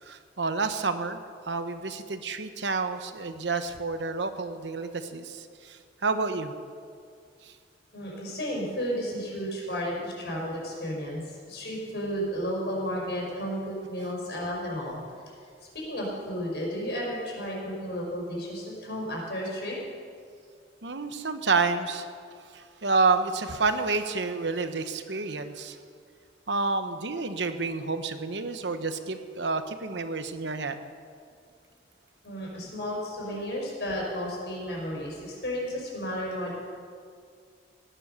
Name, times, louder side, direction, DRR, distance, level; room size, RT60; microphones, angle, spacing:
voice 1, 0.1-1.2 1.5-6.5 20.8-22.1 22.5-25.8 26.5-30.8, right 4 dB, 85° right, 9 dB, 1.0 m, -29 dB
voice 2, 7.9-15.0 15.7-19.8 32.2-36.6, equal, 70° left, -3 dB, 5.1 m, -33 dB
16.5 x 10.0 x 6.7 m, 2.2 s
head